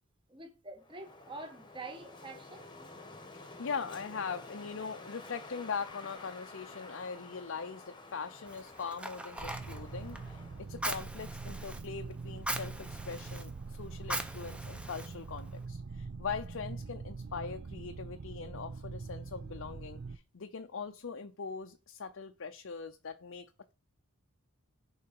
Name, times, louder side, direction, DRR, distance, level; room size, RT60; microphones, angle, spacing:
voice 1, 0.3-2.6, right 2 dB, 25° right, 1.7 m, -46 dB
Wind, 0.8-10.7, left 3 dB, 20° left, 1.2 m, -51 dB
voice 2, 3.3-23.7, left 5 dB, 60° left, 0.6 m, -41 dB
Fire, 8.5-15.6, right 1 dB, 5° right, 0.8 m, -42 dB
sound 1, 9.4-20.2, right 4 dB, 50° right, 0.5 m, -43 dB
6.7 x 4.8 x 5.5 m
head